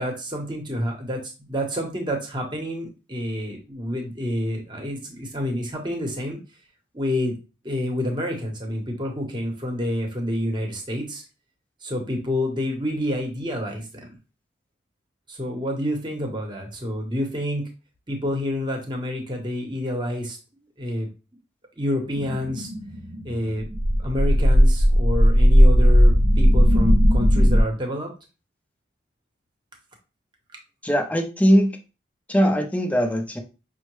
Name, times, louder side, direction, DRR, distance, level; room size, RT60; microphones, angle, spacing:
voice 1, 0.0-6.4 6.9-7.3 7.6-11.2 11.8-14.1 15.3-17.7 18.1-20.4 20.8-21.1 21.8-22.7 23.2-23.6 24.0-28.1, left 1 dB, 25° right, 2 dB, 0.9 m, -28 dB
sound 1, 22.2-27.6, equal, 60° right, 0.6 m, -17 dB
voice 2, 30.8-31.7 32.3-33.4, equal, 10° left, 3 dB, 0.5 m, -20 dB
5.5 x 2.1 x 3.1 m, 0.31 s
head